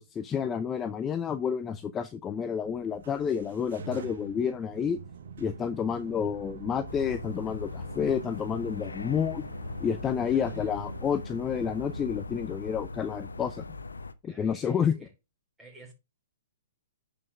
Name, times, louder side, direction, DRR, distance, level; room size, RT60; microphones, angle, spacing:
voice 1, 0.0-5.0 5.4-9.5 9.8-13.6 14.2-14.9, left 7 dB, 20° left, 0.6 m, -30 dB
sound 1, 2.6-12.0, right 5 dB, 60° right, 1.2 m, -45 dB
sound 2, 6.9-14.1, left 3 dB, 85° left, 0.9 m, -40 dB
voice 2, 10.3-10.7 14.2-15.1 15.6-15.9, right 2 dB, 10° right, 4.9 m, -50 dB
10.5 x 5.3 x 3.4 m
figure-of-eight pair, 125°, 0 cm